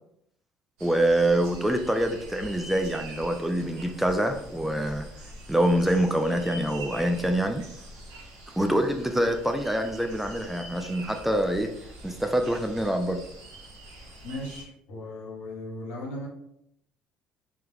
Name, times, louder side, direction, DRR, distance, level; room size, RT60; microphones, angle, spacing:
voice 1, 0.8-5.1 5.5-7.6 8.6-11.7 12.0-13.2, right 1 dB, 5° right, 5 dB, 0.3 m, -25 dB
sound 1, 0.8-14.6, right 1 dB, 85° right, 0.6 m, -44 dB
voice 2, 14.2-16.3, left 1 dB, 75° left, -2 dB, 0.9 m, -37 dB
2.3 x 2.2 x 3.2 m, 0.76 s
hypercardioid pair, 70°, 3 cm